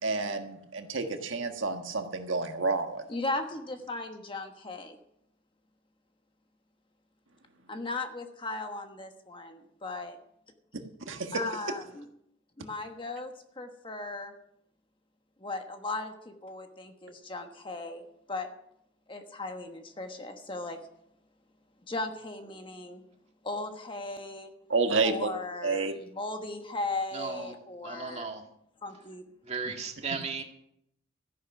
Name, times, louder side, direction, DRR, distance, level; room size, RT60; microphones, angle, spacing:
voice 1, 0.0-3.0 11.1-11.3 24.7-25.3 25.6-25.9, right 3 dB, 70° right, 5 dB, 1.5 m, -29 dB
voice 2, 3.1-5.0 7.7-10.2 11.3-12.0 12.6-14.3 15.4-18.0 18.3-18.5 19.1-20.8 21.9-23.0 23.4-24.5 25.0-28.3 28.8-29.2, left 2 dB, 25° left, 5 dB, 1.2 m, -37 dB
voice 3, 27.1-27.5 27.8-28.4 29.4-30.4, right 4 dB, 30° right, 3 dB, 2.0 m, -35 dB
14.0 x 10.5 x 5.9 m, 0.75 s
head